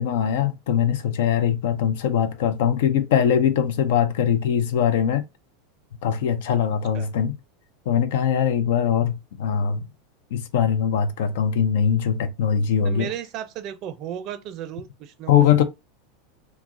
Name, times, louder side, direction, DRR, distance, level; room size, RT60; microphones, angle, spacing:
voice 1, 0.0-5.2 6.0-7.4 7.9-9.9 10.3-13.1 15.3-15.6, left 8 dB, 70° left, 0.5 m, -21 dB
voice 2, 12.8-15.3, right 10 dB, 50° right, 0.4 m, -34 dB
2.2 x 2.0 x 3.6 m
hypercardioid pair, 105°, 0 cm